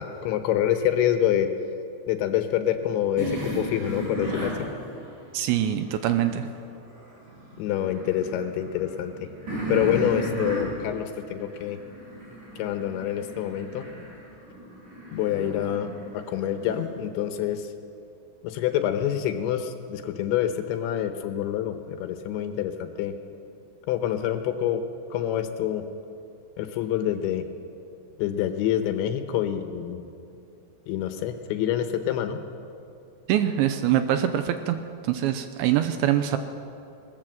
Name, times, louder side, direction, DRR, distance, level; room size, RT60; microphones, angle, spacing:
voice 1, 0.0-1.5 2.1-4.7 7.6-9.3 9.7-11.8 12.6-13.9 15.1-17.7 18.4-23.1 23.9-24.8 25.1-25.8 26.6-27.5 28.2-30.0 30.9-32.4, left 10 dB, 75° left, 7 dB, 3.1 m, -27 dB
sound 1, 3.2-6.5 6.9-16.9, equal, 40° right, 7.4 m, -35 dB
voice 2, 5.3-6.5 33.3-34.8 35.1-36.4, right 11 dB, 80° right, 9 dB, 2.9 m, -24 dB
20.0 x 19.5 x 7.7 m, 2.6 s
omnidirectional pair, 5.7 m